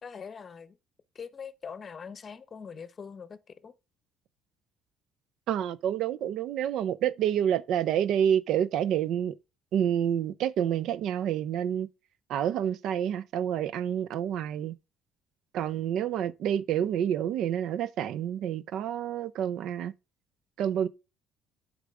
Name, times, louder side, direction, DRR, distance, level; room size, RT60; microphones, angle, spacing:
voice 1, 0.0-0.8 1.1-3.7, left 6 dB, 35° left, 0.8 m, -43 dB
voice 2, 5.5-9.3 9.7-11.9 12.3-14.8 15.5-19.9 20.6-20.9, right 9 dB, 70° right, 0.4 m, -28 dB
8.2 x 4.9 x 3.6 m
cardioid pair, 100°, 0 cm